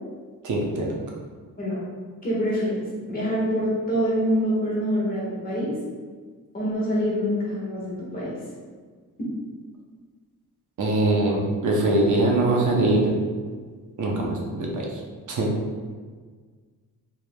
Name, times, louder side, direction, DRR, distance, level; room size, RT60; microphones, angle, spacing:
voice 1, 0.4-0.9 10.8-13.1 14.0-15.0 15.3-15.5, right 2 dB, 65° right, -2 dB, 0.8 m, -22 dB
voice 2, 2.2-2.8 3.1-5.7 6.5-8.3, equal, 25° left, -8 dB, 1.4 m, -25 dB
4.7 x 3.4 x 2.2 m, 1.6 s
wide cardioid pair, 165°, 33 cm